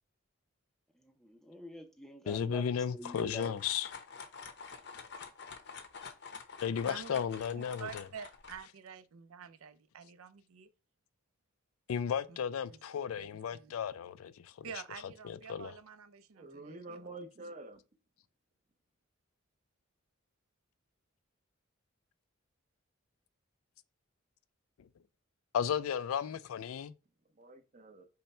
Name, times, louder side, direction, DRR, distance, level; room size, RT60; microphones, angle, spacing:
voice 1, 1.0-3.6, equal, ahead, 0.6 m, -47 dB
voice 2, 2.3-3.9 6.6-8.0 11.9-14.7 15.2-15.8 24.8-24.9 25.5-27.0, left 8 dB, 85° left, 0.3 m, -34 dB
sound 1, 2.8-8.6, left 5 dB, 55° left, 0.7 m, -48 dB
voice 3, 6.9-7.2 7.5-10.7 12.3-12.4 12.7-12.8 13.5-13.7 14.6-17.1, right 7 dB, 85° right, 0.5 m, -48 dB
voice 4, 16.3-17.8 27.3-28.1, right 2 dB, 35° right, 0.7 m, -48 dB
5.5 x 2.2 x 4.2 m
head